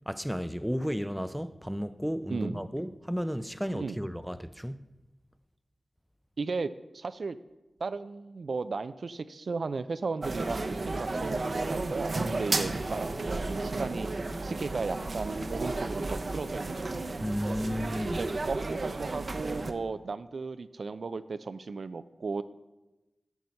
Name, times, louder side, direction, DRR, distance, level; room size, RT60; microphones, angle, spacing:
voice 1, 0.1-4.9 17.2-18.2, equal, ahead, 0.5 m, -33 dB
voice 2, 2.3-2.7 3.7-4.0 6.4-7.4 7.8-14.1 14.4-17.0 18.2-22.4, right 4 dB, 75° right, 0.4 m, -35 dB
sound 1, 10.2-19.7, right 2 dB, 60° right, 0.7 m, -33 dB
9.3 x 5.5 x 7.6 m
cardioid pair, 45°, 0 cm